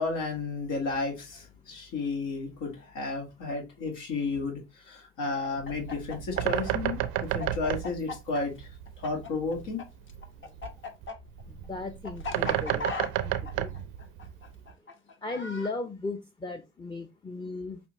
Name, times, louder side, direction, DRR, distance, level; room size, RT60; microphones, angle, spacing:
voice 1, 0.0-8.7 9.0-9.8, left 3 dB, 75° left, 1.7 m, -32 dB
Chicken rooster, 5.4-9.8 10.1-15.7, left 3 dB, 40° left, 1.0 m, -38 dB
Bird, 5.5-14.7, right 13 dB, 85° right, 0.5 m, -33 dB
voice 2, 11.5-12.9 13.2-13.8 15.2-17.8, left 3 dB, 15° left, 0.6 m, -36 dB
5.9 x 2.5 x 2.9 m
supercardioid pair, 65°, 32 cm